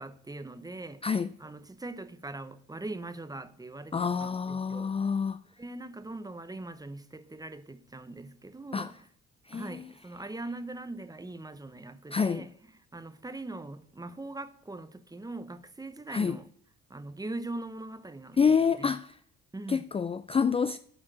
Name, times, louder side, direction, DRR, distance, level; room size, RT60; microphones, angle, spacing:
voice 1, 0.0-1.1 1.4-4.9 5.6-9.1 9.5-12.5 12.9-16.5 16.9-18.5 18.8-19.0 19.5-19.8, right 2 dB, 10° right, 0.8 m, -41 dB
voice 2, 3.9-5.4 8.7-8.9 9.5-9.8 12.1-12.5 16.1-16.4 18.4-19.1 19.7-20.8, left 6 dB, 20° left, 0.3 m, -27 dB
12.0 x 4.4 x 7.5 m
cardioid pair, 90°, 30 cm